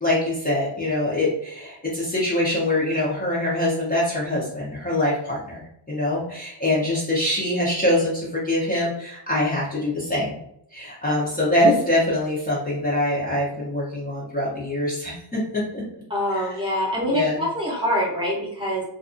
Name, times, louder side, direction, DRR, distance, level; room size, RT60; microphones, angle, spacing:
voice 1, 0.0-10.4 10.7-15.8 16.3-16.6 17.0-17.4, left 1 dB, 20° left, -7 dB, 0.7 m, -24 dB
voice 2, 16.1-18.8, equal, 10° right, -6 dB, 0.8 m, -25 dB
2.6 x 2.4 x 2.6 m, 0.73 s
wide cardioid pair, 125°, 45 cm